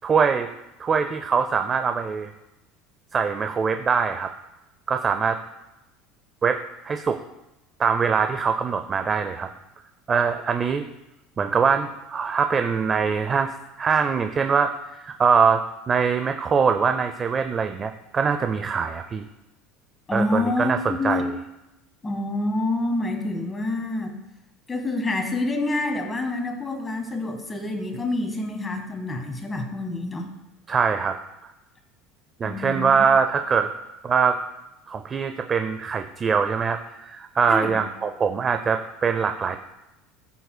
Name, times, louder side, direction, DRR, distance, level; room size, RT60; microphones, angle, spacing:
voice 1, 0.0-0.5 0.8-2.3 3.1-4.3 4.9-5.4 6.4-7.2 7.8-9.5 10.1-10.9 11.4-13.5 13.8-15.6 15.9-19.2 20.1-21.2 30.7-31.2 32.4-33.7 34.0-34.4 34.9-39.6, right 6 dB, 25° right, 7 dB, 0.4 m, -23 dB
voice 2, 20.1-21.3 22.0-24.1 24.7-30.3 32.4-33.0 37.5-37.8, left 2 dB, 15° left, 4 dB, 1.4 m, -27 dB
14.5 x 6.8 x 2.2 m, 0.96 s
supercardioid pair, 135°, 0 cm